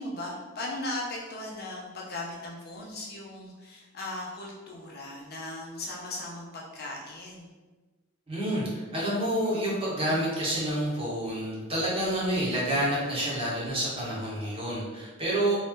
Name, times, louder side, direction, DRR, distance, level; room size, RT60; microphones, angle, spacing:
voice 1, 0.0-7.5, left 1 dB, 50° left, -2 dB, 0.6 m, -38 dB
voice 2, 8.3-15.6, right 1 dB, 25° right, -6 dB, 1.0 m, -28 dB
3.1 x 2.7 x 3.6 m, 1.3 s
head